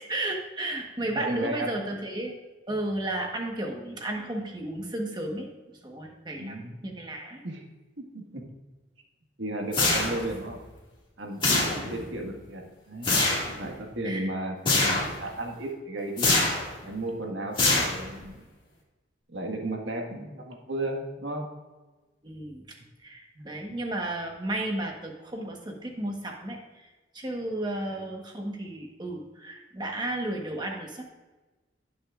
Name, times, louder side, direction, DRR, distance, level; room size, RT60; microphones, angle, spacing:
voice 1, 0.1-2.4 2.7-5.5 5.8-7.4 11.8-12.1 14.0-14.3 22.2-22.8 23.0-26.9 27.1-31.0, right 1 dB, 25° right, 1 dB, 1.3 m, -33 dB
voice 2, 1.0-1.8 6.4-6.8 7.4-7.6 8.0-8.4 9.4-10.6 11.2-13.1 13.5-16.3 16.8-18.4 19.3-21.5 23.3-23.5 27.9-28.1, right 1 dB, 85° right, 1 dB, 1.7 m, -34 dB
sound 1, 9.7-10.4 11.4-12.1 13.0-13.5 14.7-15.2 16.2-16.7 17.6-18.2, left 2 dB, 25° left, 2.0 m, -24 dB
18.5 x 6.2 x 2.5 m, 1.2 s
head